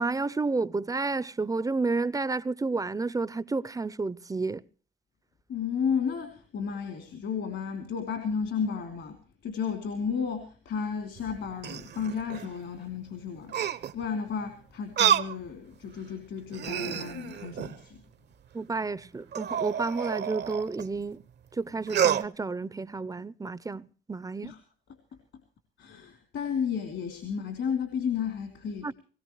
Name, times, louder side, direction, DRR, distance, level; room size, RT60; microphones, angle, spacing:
voice 1, 0.0-4.6 18.5-21.2 21.6-24.5 28.8-28.9, right 3 dB, 15° right, 0.6 m, -31 dB
voice 2, 5.5-9.2 9.4-18.0 24.4-24.6 25.8-28.9, left 6 dB, 70° left, 3.2 m, -33 dB
sound 1, 11.2-12.5 13.5-14.1 15.0-15.4 15.9-16.0 16.5-17.8 19.3-20.9 21.9-22.3, right 9 dB, 60° right, 0.9 m, -29 dB
20.0 x 17.5 x 3.2 m
cardioid pair, 90°, 20 cm